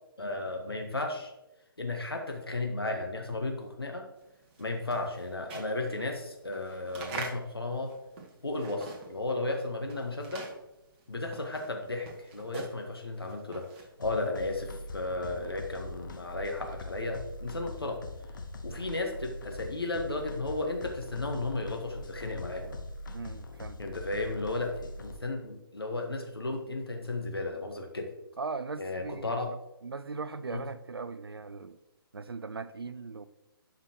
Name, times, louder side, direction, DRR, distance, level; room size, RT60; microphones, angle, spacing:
voice 1, 0.2-1.3 1.8-4.0 4.6-7.9 8.4-10.5 11.1-18.0 18.6-22.7 23.8-28.1 28.8-29.5 30.5-30.6, left 2 dB, 75° left, 2 dB, 1.4 m, -34 dB
sound 1, 4.3-9.3 9.6-14.0, right 4 dB, 25° right, 1.4 m, -44 dB
sound 2, 14.0-25.2, left 2 dB, 55° left, 1.1 m, -42 dB
voice 2, 23.1-23.8 28.4-29.6 29.8-31.8 32.1-33.2, right 4 dB, 75° right, 12 dB, 0.5 m, -39 dB
11.5 x 5.8 x 3.0 m, 0.95 s
figure-of-eight pair, 135°, 13 cm